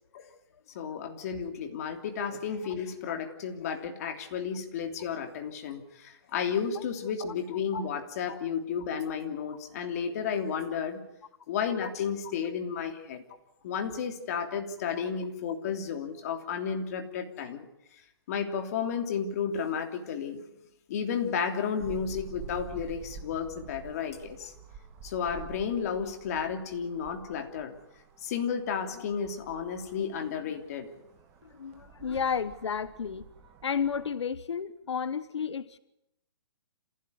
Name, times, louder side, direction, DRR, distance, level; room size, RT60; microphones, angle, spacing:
voice 1, 0.7-11.0 11.5-13.2 13.6-17.7 18.3-20.4 20.9-24.5 25.0-27.7 28.2-30.9, left 7 dB, 35° left, 5 dB, 3.1 m, -32 dB
sound 1, 21.8-34.1, right 6 dB, 15° right, 2.1 m, -49 dB
voice 2, 31.4-33.3 33.6-35.8, left 6 dB, 85° left, 15 dB, 1.2 m, -32 dB
27.5 x 16.0 x 9.7 m, 0.82 s
hypercardioid pair, 170°, 14 cm